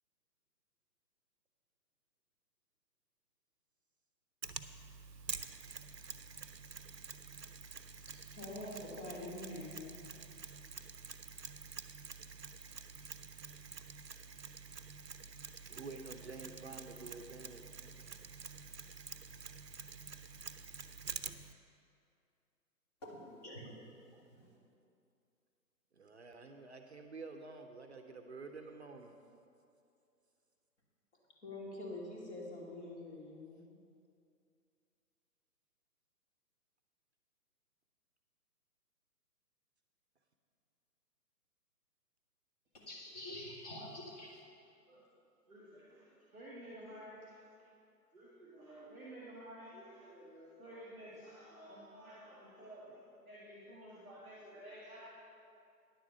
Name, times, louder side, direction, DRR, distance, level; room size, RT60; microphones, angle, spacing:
Mechanisms, 4.4-21.5, right 5 dB, 90° right, 0.7 m, -48 dB
voice 1, 8.3-10.1 31.4-33.7, left 1 dB, 45° left, -3 dB, 2.6 m, -45 dB
voice 2, 15.7-17.6 25.9-29.1, right 3 dB, 45° right, 4 dB, 0.7 m, -49 dB
voice 3, 23.0-24.6 42.7-44.4, left 1 dB, 25° left, -2 dB, 1.4 m, -48 dB
voice 4, 45.5-47.7 48.1-55.1, right 1 dB, ahead, -26 dB, 0.6 m, -52 dB
10.5 x 7.2 x 6.6 m, 2.5 s
figure-of-eight pair, 135°, 48 cm